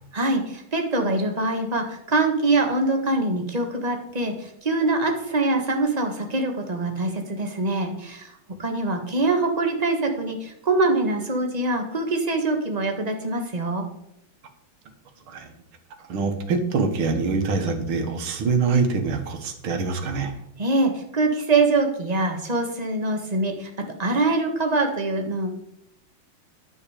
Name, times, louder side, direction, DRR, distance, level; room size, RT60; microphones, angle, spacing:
voice 1, 0.1-8.3 8.6-13.9 20.6-23.7 24.0-25.6, right 2 dB, 20° right, 3 dB, 1.4 m, -24 dB
voice 2, 16.1-20.3, right 4 dB, 80° right, 6 dB, 2.1 m, -24 dB
10.0 x 8.3 x 5.0 m, 0.80 s
omnidirectional pair, 2.3 m